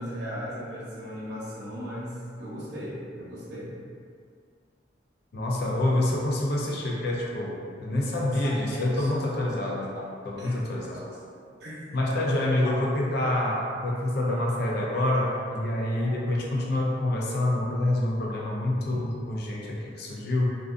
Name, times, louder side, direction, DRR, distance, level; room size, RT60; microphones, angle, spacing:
voice 1, 0.0-3.7 8.2-9.5 9.9-10.1 10.4-12.0 12.6-12.9 13.3-13.5 14.6-15.0 15.9-16.1 18.1-18.2 19.0-19.3, equal, 70° right, -7 dB, 0.8 m, -39 dB
voice 2, 5.3-10.0 10.2-11.0 11.9-20.6, left 1 dB, 60° left, -3 dB, 0.4 m, -27 dB
2.4 x 2.3 x 2.4 m, 2.2 s
head